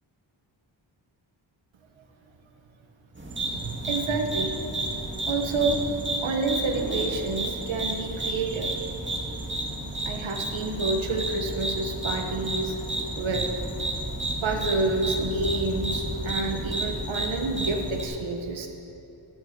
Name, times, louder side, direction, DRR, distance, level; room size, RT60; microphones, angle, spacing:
sound 1, 3.2-18.0, right 1 dB, 25° right, 2.2 m, -32 dB
voice 1, 3.4-4.6 5.3-6.0 6.2-8.7 10.0-12.8 13.1-13.5 14.4-18.7, right 3 dB, 75° right, 3 dB, 1.4 m, -28 dB
14.0 x 8.1 x 8.1 m, 2.9 s
wide cardioid pair, 100°, 47 cm